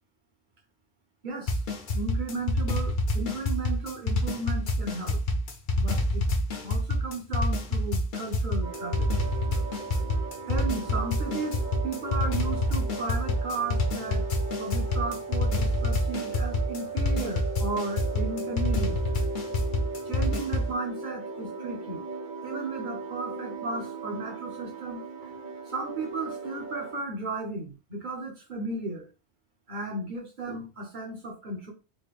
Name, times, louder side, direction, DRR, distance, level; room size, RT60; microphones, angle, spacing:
voice 1, 1.2-1.6 1.9-5.2 5.8-6.2 6.6-9.1 10.5-14.3 14.6-19.0 20.0-22.0 22.4-25.3 25.7-29.1 29.7-31.7, right 2 dB, 50° right, 1 dB, 1.1 m, -35 dB
sound 1, 1.5-20.7, left 1 dB, 55° left, 0.8 m, -27 dB
sound 2, 8.6-27.0, right 3 dB, 80° right, 2.0 m, -38 dB
4.1 x 2.2 x 3.3 m, 0.31 s
omnidirectional pair, 1.1 m